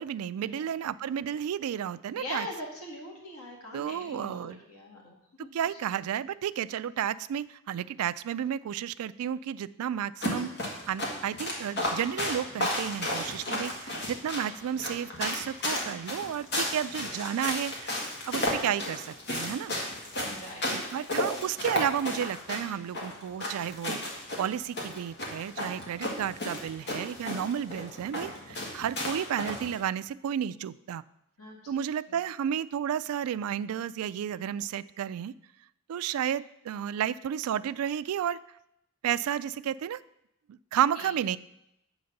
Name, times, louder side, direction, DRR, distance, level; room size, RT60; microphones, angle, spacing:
voice 1, 0.0-2.5 3.7-4.6 5.5-10.5 10.9-19.7 20.7-24.0 24.4-31.0 31.7-35.3 35.9-38.4 39.0-40.0 40.5-41.4, right 9 dB, 75° right, 17 dB, 0.3 m, -32 dB
voice 2, 2.2-5.5 20.2-21.0 31.4-31.6 41.0-41.1, left 1 dB, 85° left, -1 dB, 2.1 m, -42 dB
sound 1, 10.2-29.8, left 1 dB, 50° left, 1.8 m, -33 dB
7.7 x 4.0 x 6.4 m, 0.81 s
head